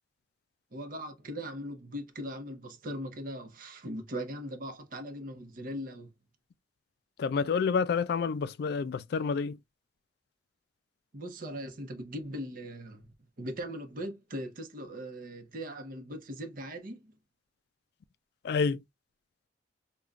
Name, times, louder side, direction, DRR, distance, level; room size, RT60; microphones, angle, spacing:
voice 1, 0.7-6.1 11.1-13.1 13.4-17.1, equal, 50° right, 0.8 m, -39 dB
voice 2, 7.2-9.6 18.4-18.8, left 5 dB, 60° left, 0.3 m, -28 dB
5.1 x 2.3 x 2.3 m
head